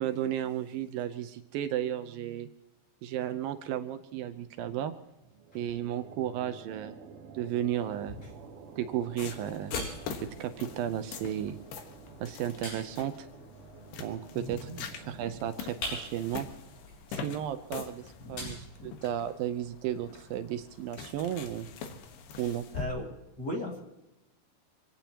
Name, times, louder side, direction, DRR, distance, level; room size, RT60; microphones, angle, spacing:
voice 1, 0.0-2.5 3.0-4.9 5.6-7.1 7.3-8.2 8.8-9.8 10.4-11.6 12.2-13.3 14.0-16.5 17.1-18.0 18.3-18.6 18.8-21.7 22.4-22.7, right 11 dB, 75° right, 10 dB, 2.4 m, -34 dB
sound 1, 5.2-18.6, right 5 dB, 60° right, 1.9 m, -52 dB
sound 2, 7.5-19.5, left 1 dB, 65° left, 9.3 m, -46 dB
sound 3, 9.2-22.9, left 6 dB, 85° left, 3.4 m, -44 dB
voice 2, 14.3-14.9 18.2-18.9 22.3-23.1 23.4-23.8, left 1 dB, 30° left, 0 dB, 2.4 m, -39 dB
26.0 x 17.0 x 3.0 m, 0.94 s
omnidirectional pair, 4.3 m